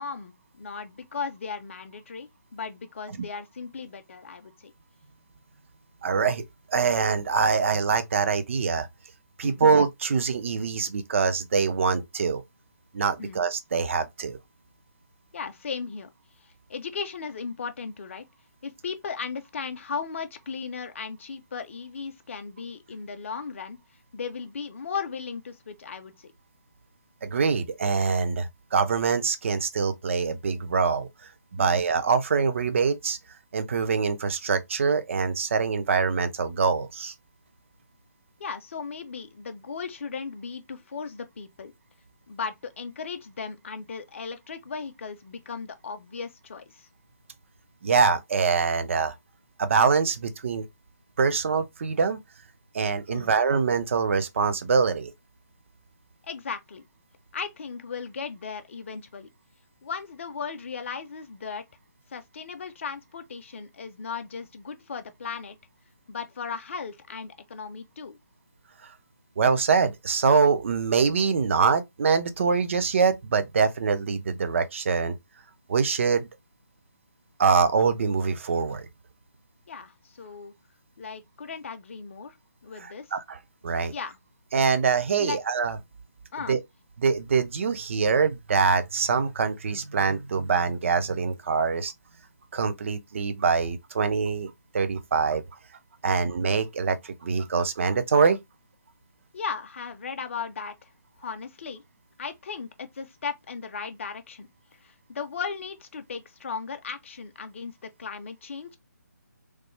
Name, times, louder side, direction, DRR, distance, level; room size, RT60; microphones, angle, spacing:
voice 1, 0.0-4.7 9.4-9.6 13.2-13.4 15.3-16.1 16.4-18.2 18.6-23.8 24.1-26.3 31.6-31.9 38.4-41.7 42.3-46.9 53.1-53.3 56.2-56.8 57.3-59.3 59.8-61.6 62.1-65.6 66.1-68.2 79.7-80.5 81.0-82.4 82.6-83.1 83.9-84.2 85.2-85.4 86.3-86.6 96.0-96.3 99.3-100.9 101.2-101.8 102.2-104.5 104.8-108.8, left 5 dB, 45° left, 0.5 m, -36 dB
voice 2, 6.0-6.4 6.7-8.9 9.4-12.4 12.9-14.4 27.2-31.1 31.5-33.2 33.5-37.1 47.8-49.2 49.6-50.7 51.2-52.2 52.7-55.1 69.4-75.1 75.7-76.3 77.4-78.9 82.8-83.4 83.6-83.9 84.5-85.8 86.5-86.6 87.0-91.9 92.5-95.4 96.0-98.4, right 5 dB, 45° right, 0.4 m, -24 dB
3.1 x 2.0 x 3.0 m
figure-of-eight pair, 160°, 10 cm